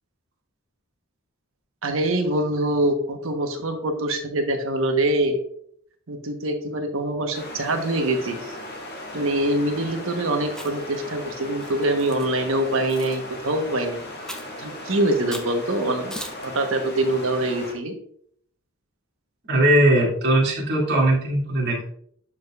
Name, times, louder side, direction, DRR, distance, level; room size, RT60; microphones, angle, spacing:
voice 1, 1.8-5.4 6.1-8.5 9.1-14.0 14.6-16.1 16.4-17.9, right 1 dB, 70° right, 5 dB, 1.2 m, -24 dB
sound 1, 7.3-17.7, left 1 dB, 50° left, 1.9 m, -37 dB
Chewing mastication, 10.5-10.9 11.6-12.3 12.9-13.2 14.3-14.6 15.3-15.5 16.1-16.5, equal, 5° left, 0.7 m, -38 dB
voice 2, 19.5-21.9, right 1 dB, 50° right, -3 dB, 2.5 m, -19 dB
11.5 x 5.0 x 2.4 m, 0.64 s
head